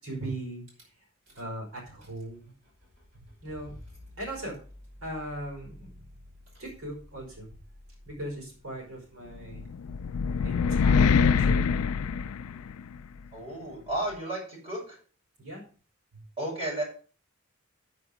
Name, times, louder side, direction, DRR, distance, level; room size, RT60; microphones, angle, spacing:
voice 1, 0.0-0.6 1.4-2.5 3.4-3.8 4.2-4.6 5.0-6.2 6.6-7.5 8.1-9.6 10.4-11.8 15.4-15.6, right 1 dB, 80° right, 0 dB, 5.0 m, -38 dB
Rattle / Car / Engine starting, 0.7-0.8 1.3-1.6 1.9-9.6, left 1 dB, 55° right, 5.6 m, -52 dB
sound 1, 9.5-13.0, left 6 dB, 85° left, 0.4 m, -24 dB
voice 2, 13.3-15.0 16.4-16.8, right 1 dB, 25° right, -3 dB, 6.2 m, -33 dB
9.5 x 7.9 x 5.0 m, 0.39 s
head